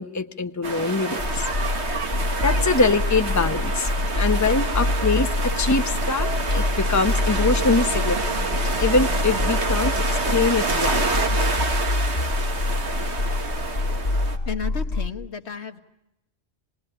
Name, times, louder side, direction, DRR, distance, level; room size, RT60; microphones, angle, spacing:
voice 1, 0.0-1.4 2.4-8.5 8.8-11.0, left 3 dB, 15° left, 7 dB, 1.0 m, -24 dB
sound 1, 0.6-14.4, right 3 dB, 90° right, 2.1 m, -28 dB
sound 2, 1.2-15.1, left 2 dB, 60° left, 2.3 m, -26 dB
voice 2, 14.5-15.8, left 6 dB, 80° left, 6 dB, 1.7 m, -32 dB
27.0 x 20.5 x 9.9 m, 0.91 s
omnidirectional pair, 1.1 m